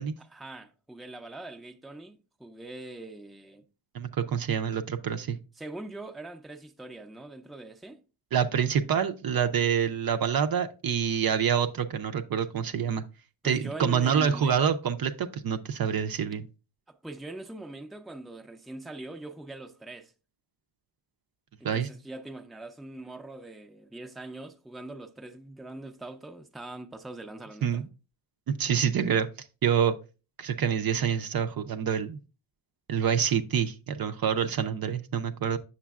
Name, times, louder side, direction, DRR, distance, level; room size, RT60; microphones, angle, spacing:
voice 1, 0.2-3.6 5.6-8.0 13.4-14.6 16.9-20.1 21.6-27.8, right 2 dB, ahead, 0.5 m, -42 dB
voice 2, 3.9-5.4 8.3-13.0 13.4-16.5 21.6-21.9 27.6-27.8 28.5-29.3 29.6-30.0 30.4-32.2 32.9-35.6, right 7 dB, 50° right, 0.6 m, -27 dB
7.2 x 6.6 x 2.3 m
cardioid pair, 80°, 47 cm